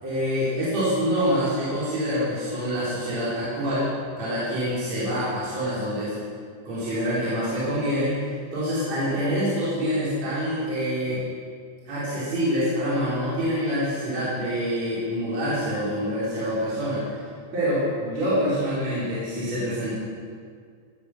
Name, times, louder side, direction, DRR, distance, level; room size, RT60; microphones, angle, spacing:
voice 1, 0.0-3.9 4.2-6.2 6.6-8.2 8.5-11.2 11.9-17.2 17.5-19.9, equal, 40° right, -10 dB, 4.6 m, -26 dB
16.5 x 11.5 x 6.5 m, 2.1 s
omnidirectional pair, 5.3 m